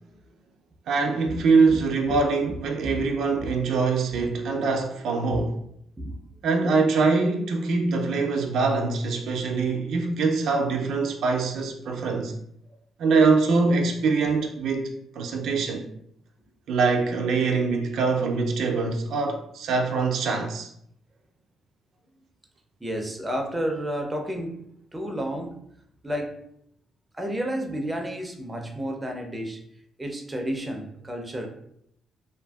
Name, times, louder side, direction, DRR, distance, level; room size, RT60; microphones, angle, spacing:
voice 1, 0.9-5.5 6.4-12.3 13.0-14.9 15.1-15.8 16.7-20.7, right 4 dB, 75° right, 0.4 m, -23 dB
voice 2, 6.0-6.3 22.8-24.6 24.9-25.5 26.0-26.4 27.1-29.6 30.0-31.5, equal, 15° right, 0.4 m, -31 dB
2.6 x 2.5 x 2.2 m
cardioid pair, 90°, 0 cm